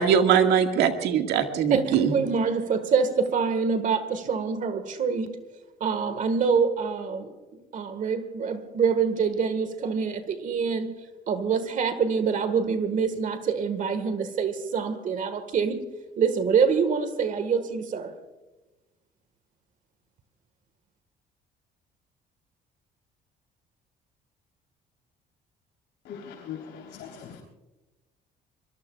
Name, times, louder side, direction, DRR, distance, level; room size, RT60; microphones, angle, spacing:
voice 1, 0.0-2.1, right 7 dB, 85° right, 5 dB, 1.9 m, -21 dB
voice 2, 1.7-5.4 5.8-7.3 7.7-10.9 11.3-15.8 16.2-18.1, right 5 dB, 50° right, 10 dB, 1.6 m, -25 dB
voice 3, 26.0-27.4, left 8 dB, 90° left, -3 dB, 3.8 m, -40 dB
26.0 x 22.0 x 2.4 m, 1.1 s
cardioid pair, 110°, 17 cm